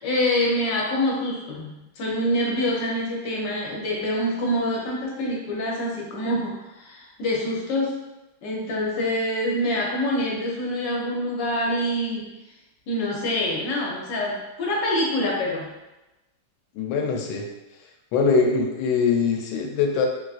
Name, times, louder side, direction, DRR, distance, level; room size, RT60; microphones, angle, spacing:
voice 1, 0.0-8.0 8.4-12.3 12.9-15.7, left 1 dB, 70° left, -3 dB, 1.3 m, -26 dB
voice 2, 16.8-17.5 18.1-20.1, left 5 dB, 85° left, 1 dB, 1.4 m, -22 dB
4.0 x 2.4 x 2.4 m, 0.99 s
omnidirectional pair, 2.1 m